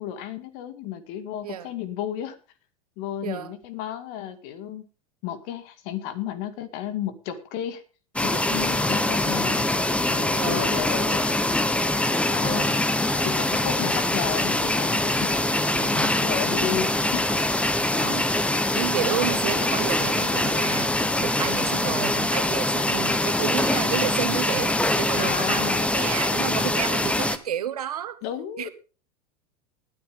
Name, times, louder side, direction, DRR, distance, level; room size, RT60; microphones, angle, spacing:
voice 1, 0.0-2.4 3.0-4.8 5.2-7.8 8.2-9.7 10.1-11.3 12.3-12.6 13.2-15.5 16.2-17.4 25.1-25.9 28.2-28.7, left 10 dB, 60° left, 2.2 m, -33 dB
voice 2, 3.2-3.5 10.3-10.7 12.4-12.7 15.7-16.3 18.0-18.3 18.8-20.9 21.2-28.2 28.6-28.7, right 10 dB, 85° right, 1.2 m, -31 dB
sound 1, 8.2-27.4, left 1 dB, 5° left, 1.0 m, -24 dB
19.5 x 9.2 x 3.4 m
hypercardioid pair, 95°, 19 cm